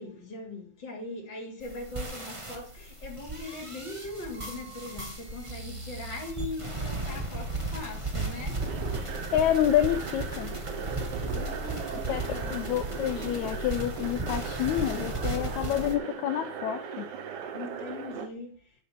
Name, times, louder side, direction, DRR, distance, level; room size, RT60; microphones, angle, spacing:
voice 1, 0.0-8.7 11.3-12.7 17.5-18.7, left 2 dB, 35° left, 3.5 m, -40 dB
sound 1, 1.6-15.9, right 2 dB, 15° right, 1.2 m, -35 dB
sound 2, 8.6-18.3, right 7 dB, 80° right, 2.7 m, -38 dB
voice 2, 9.3-10.5 12.1-17.1, left 11 dB, 75° left, 2.1 m, -28 dB
9.7 x 7.7 x 5.8 m
omnidirectional pair, 3.5 m